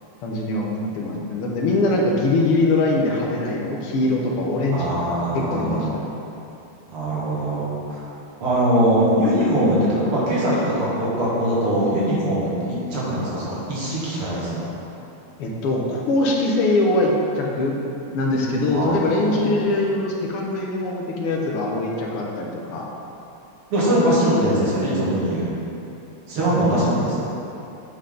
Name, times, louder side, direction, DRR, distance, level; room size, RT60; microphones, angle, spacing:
voice 1, 0.2-6.0 15.4-17.8 18.1-22.9 26.4-26.9, left 2 dB, 85° left, -1 dB, 1.9 m, -22 dB
voice 2, 4.7-5.9 6.9-8.0 8.4-14.6 18.7-19.5 23.7-25.5 26.3-27.3, right 1 dB, 75° right, -7 dB, 2.7 m, -22 dB
8.5 x 5.7 x 3.8 m, 2.8 s
omnidirectional pair, 2.4 m